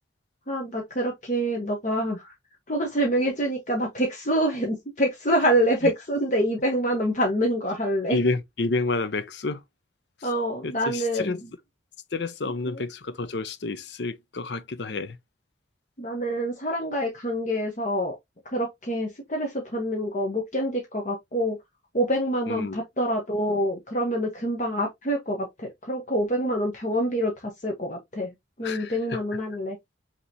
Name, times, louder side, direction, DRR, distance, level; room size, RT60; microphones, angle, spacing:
voice 1, 0.5-2.3 2.7-8.2 10.2-11.5 12.7-12.8 16.0-18.2 18.4-21.6 21.9-28.3 28.6-29.8, equal, 40° left, 0.9 m, -26 dB
voice 2, 8.1-9.6 10.2-10.3 10.6-11.4 12.1-15.2 22.5-22.8 28.6-29.2, left 3 dB, 70° left, 0.7 m, -29 dB
5.6 x 3.0 x 2.6 m
head